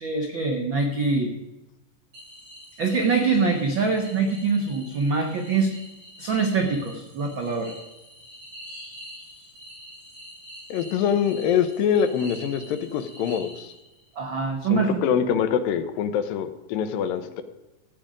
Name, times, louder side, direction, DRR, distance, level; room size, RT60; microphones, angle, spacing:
voice 1, 0.0-1.3 2.8-5.7 6.2-7.7 14.1-15.0, right 4 dB, 75° right, 3 dB, 1.1 m, -24 dB
sound 1, 2.1-14.1, equal, 40° right, 6.4 m, -45 dB
voice 2, 10.7-13.7 14.7-17.4, left 8 dB, 85° left, 9 dB, 2.6 m, -24 dB
14.5 x 8.8 x 5.1 m, 0.99 s
omnidirectional pair, 4.1 m